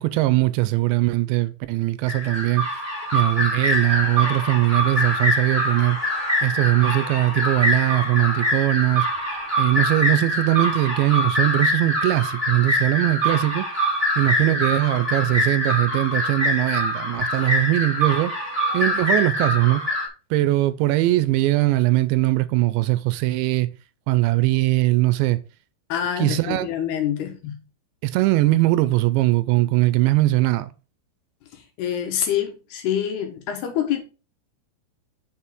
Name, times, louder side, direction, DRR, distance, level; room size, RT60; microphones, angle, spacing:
voice 1, 0.0-2.7 3.1-6.0 6.4-9.1 9.6-13.7 14.2-18.3 18.7-19.8 20.3-23.7 24.1-25.4 26.2-26.7 28.0-30.7, right 18 dB, 85° right, 2.8 m, -20 dB
sound 1, 2.1-20.1, equal, 10° right, 2.6 m, -24 dB
voice 2, 25.9-27.5 31.8-34.0, left 10 dB, 65° left, 3.0 m, -26 dB
7.2 x 7.0 x 3.7 m
omnidirectional pair, 5.5 m